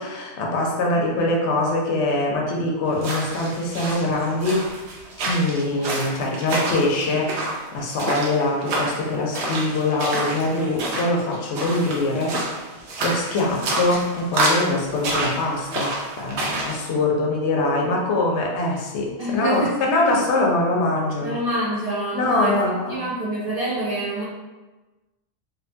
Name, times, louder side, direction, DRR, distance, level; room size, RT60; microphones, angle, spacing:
voice 1, 0.0-4.7 5.2-7.4 7.7-12.6 13.0-21.4 22.1-23.0, left 2 dB, 90° left, -1 dB, 0.9 m, -23 dB
voice 2, 0.9-1.4 19.2-20.2 21.2-22.6 22.9-24.2, right 1 dB, 45° right, -7 dB, 0.6 m, -27 dB
sound 1, 2.9-16.8, right 2 dB, 80° right, 0.9 m, -28 dB
2.6 x 2.2 x 2.6 m, 1.2 s
omnidirectional pair, 1.1 m